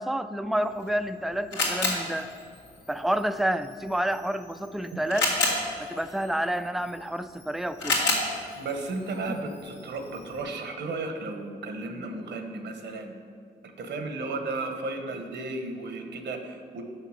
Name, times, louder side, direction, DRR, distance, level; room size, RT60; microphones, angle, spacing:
voice 1, 0.0-2.3 2.9-5.3 5.8-8.0 9.3-9.4, right 1 dB, ahead, 11 dB, 0.4 m, -29 dB
Camera, 0.6-10.4, left 2 dB, 80° left, 2.3 m, -33 dB
voice 2, 8.5-13.1 13.8-16.8, right 3 dB, 70° right, 5 dB, 1.1 m, -34 dB
6.5 x 6.0 x 6.5 m, 2.3 s
supercardioid pair, 55°, 19 cm